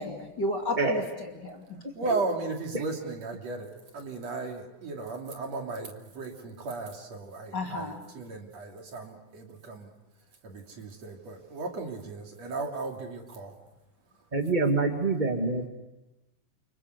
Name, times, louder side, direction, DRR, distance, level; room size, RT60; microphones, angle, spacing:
voice 1, 0.0-1.8 7.5-8.0, left 1 dB, 30° left, 2 dB, 2.7 m, -33 dB
voice 2, 2.0-9.9 10.4-13.6, right 3 dB, 50° right, 2 dB, 3.8 m, -36 dB
voice 3, 14.3-15.7, right 3 dB, 25° right, 3 dB, 1.0 m, -26 dB
29.0 x 25.5 x 8.0 m, 1.0 s
omnidirectional pair, 4.1 m